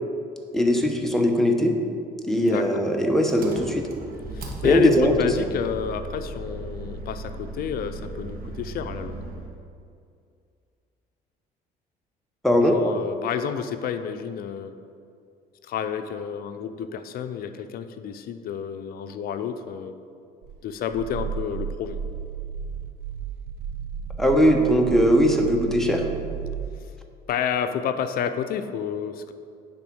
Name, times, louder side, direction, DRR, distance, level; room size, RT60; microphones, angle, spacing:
voice 1, 0.5-1.7 2.3-3.9 4.6-5.1 12.4-12.8 24.2-26.1, equal, ahead, 2 dB, 0.9 m, -20 dB
Engine, 3.3-9.6, right 2 dB, 60° right, 1.3 m, -36 dB
voice 2, 4.3-9.2 12.6-14.7 15.6-19.9 20.6-22.0 27.3-29.3, left 8 dB, 60° left, 9 dB, 0.5 m, -30 dB
Growling, 20.4-26.8, right 7 dB, 85° right, 0.5 m, -33 dB
9.7 x 3.6 x 6.1 m, 2.4 s
cardioid pair, 110°, 17 cm